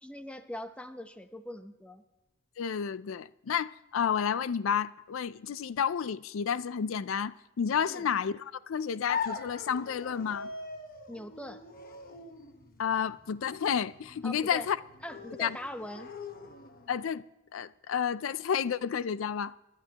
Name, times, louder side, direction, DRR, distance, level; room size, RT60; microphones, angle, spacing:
voice 1, 0.0-2.0 7.9-8.1 11.1-11.7 14.2-14.7 15.0-16.1, left 1 dB, 5° left, 0.8 m, -42 dB
voice 2, 2.6-10.5 12.8-14.8 15.4-15.6 16.9-17.2 17.5-19.5, left 7 dB, 85° left, 0.4 m, -31 dB
sound 1, 9.1-17.0, left 5 dB, 50° left, 1.3 m, -42 dB
25.0 x 12.5 x 2.9 m
head